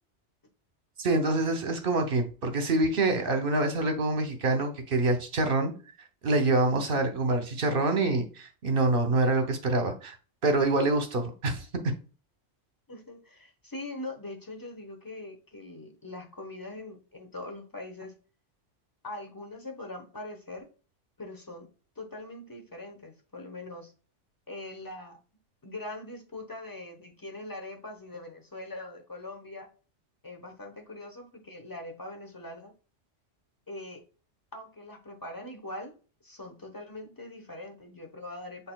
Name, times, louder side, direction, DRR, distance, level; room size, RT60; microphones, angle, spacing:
voice 1, 1.0-5.7 6.2-10.2 10.4-11.9, right 2 dB, 50° right, 7 dB, 1.0 m, -26 dB
voice 2, 12.9-18.1 19.0-20.7 21.2-21.7 22.0-23.9 24.5-25.2 25.6-29.7 30.2-32.7 33.7-34.0 34.5-35.9 36.2-38.7, left 2 dB, 20° left, 3 dB, 0.9 m, -42 dB
6.6 x 3.5 x 2.2 m, 0.36 s
omnidirectional pair, 1.2 m